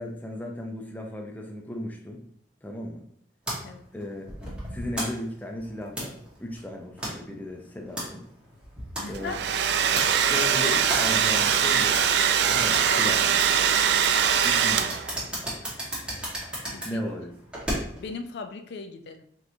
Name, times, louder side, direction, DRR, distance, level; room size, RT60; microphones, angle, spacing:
voice 1, 0.0-2.2 2.6-3.0 3.9-4.3 4.7-8.2 9.1-9.4 10.3-12.0 12.5-13.4 14.4-14.9 16.8-17.3, left 1 dB, 10° left, 1 dB, 0.5 m, -35 dB
sound 1, 3.5-18.1, right 1 dB, 5° right, 1.4 m, -37 dB
voice 2, 9.0-9.4 12.9-13.2 16.7-17.0 18.0-19.3, left 4 dB, 65° left, 7 dB, 0.4 m, -37 dB
Domestic sounds home sounds, 9.1-15.2, right 8 dB, 70° right, 0.3 m, -22 dB
5.1 x 3.0 x 2.7 m, 0.66 s
head